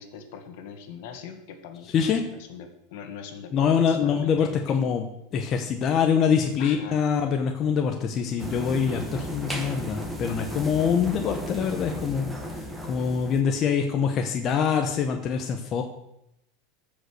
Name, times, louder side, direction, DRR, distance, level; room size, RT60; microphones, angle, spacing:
voice 1, 0.0-4.8 6.6-7.0, left 7 dB, 60° left, 7 dB, 1.7 m, -42 dB
voice 2, 1.9-2.2 3.5-5.0 5.3-15.8, left 7 dB, 30° left, 4 dB, 0.9 m, -24 dB
sound 1, 8.4-13.4, equal, 5° right, 1.5 m, -34 dB
14.5 x 5.3 x 6.5 m, 0.83 s
supercardioid pair, 160°, 0 cm